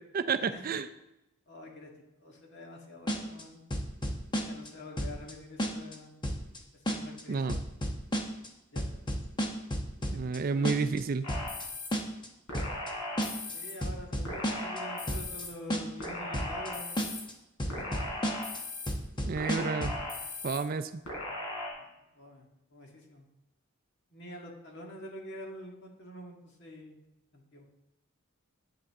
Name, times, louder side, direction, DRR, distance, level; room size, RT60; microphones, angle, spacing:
voice 1, 0.1-0.9 7.3-7.6 10.1-11.3 19.2-19.9 20.4-20.9, right 5 dB, 40° right, 12 dB, 0.4 m, -30 dB
voice 2, 1.5-1.9 2.2-3.6 4.4-6.2 6.7-7.6 8.7-9.0 10.4-10.9 13.5-17.0 17.6-18.1 21.8-21.9 22.2-23.3 24.1-27.0 27.3-27.6, left 1 dB, 55° left, 0 dB, 1.8 m, -46 dB
sound 1, 3.1-3.4 3.7-4.7 5.0-5.3 5.6-6.0 6.2-6.6 6.9-7.2 7.5-8.5 8.8-10.4 10.6-11.0 11.3-11.6 11.9-12.3 12.5-12.9 13.2-13.5 13.8-14.8 15.1-15.4 15.7-16.1 16.3-16.7 17.0-17.3 17.6-18.6 18.9-20.0, equal, 20° left, 1.0 m, -32 dB
sound 2, 11.2-11.9 12.5-13.7 14.2-15.5 16.0-17.2 17.7-18.9 19.4-20.6 21.1-21.7, left 2 dB, 75° left, 3.4 m, -38 dB
10.5 x 8.7 x 3.6 m, 0.94 s
head